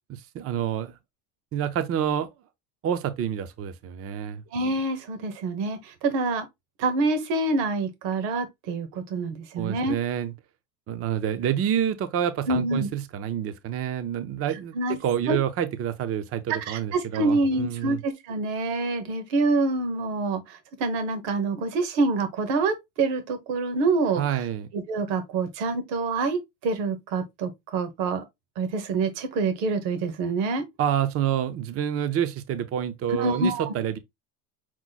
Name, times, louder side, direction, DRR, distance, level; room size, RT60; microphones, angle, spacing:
voice 1, 0.1-0.9 1.5-2.3 2.8-4.4 9.6-10.3 10.9-18.0 24.2-24.7 30.8-34.0, right 9 dB, 30° right, 0.5 m, -28 dB
voice 2, 4.5-6.5 6.8-9.9 12.5-12.9 14.7-15.0 15.3-15.4 16.5-24.2 24.7-28.2 28.6-30.6 33.2-33.7, right 3 dB, 70° right, 1.4 m, -26 dB
6.1 x 2.1 x 4.0 m
cardioid pair, 140°, 47 cm